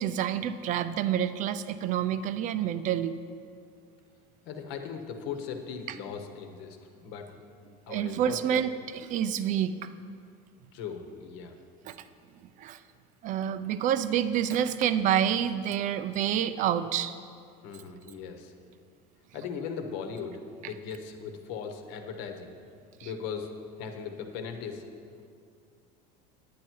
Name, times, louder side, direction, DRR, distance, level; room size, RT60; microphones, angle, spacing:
voice 1, 0.0-3.1 7.9-9.7 11.9-12.0 12.6-12.8 13.2-17.1 23.0-23.1, right 9 dB, 40° right, 12 dB, 0.5 m, -28 dB
voice 2, 4.4-7.3 7.9-8.4 10.7-11.6 17.6-18.5 19.3-22.5 23.0-24.8, left 6 dB, 65° left, 5 dB, 1.2 m, -38 dB
10.0 x 9.5 x 4.6 m, 2.3 s
cardioid pair, 145°, 20 cm